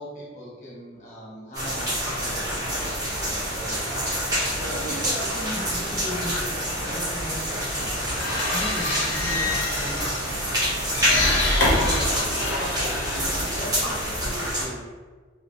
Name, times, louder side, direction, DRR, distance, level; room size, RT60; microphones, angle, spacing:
voice 1, 0.0-3.8 4.6-5.3 10.9-11.3 11.8-12.9 13.4-14.9, equal, 40° left, -7 dB, 1.2 m, -39 dB
sound 1, 1.5-14.6, equal, 20° right, 1.1 m, -27 dB
voice 2, 3.7-4.2 4.7-8.2 8.5-10.4, equal, 5° left, -9 dB, 0.5 m, -37 dB
sound 2, 7.8-14.3, left 1 dB, 75° left, 0.9 m, -27 dB
3.3 x 3.0 x 2.5 m, 1.4 s
head